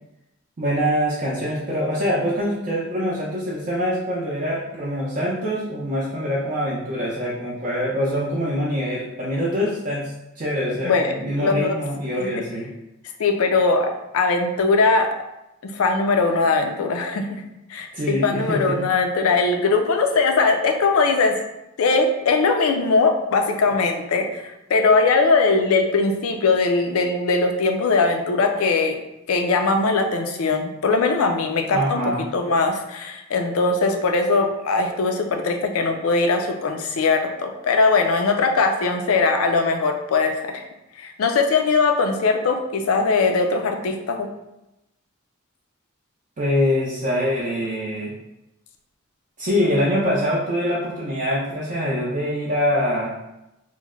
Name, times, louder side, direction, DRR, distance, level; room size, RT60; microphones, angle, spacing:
voice 1, 0.6-10.1 10.4-12.7 17.9-18.8 31.7-32.3 46.4-48.1 49.4-53.1, equal, 35° right, -7 dB, 0.5 m, -24 dB
voice 2, 10.8-11.8 12.2-12.3 13.2-15.1 15.6-17.4 17.7-21.4 21.8-29.0 29.3-40.6 41.0-44.3, left 3 dB, 80° left, 5 dB, 0.4 m, -20 dB
3.0 x 2.1 x 3.6 m, 0.91 s
head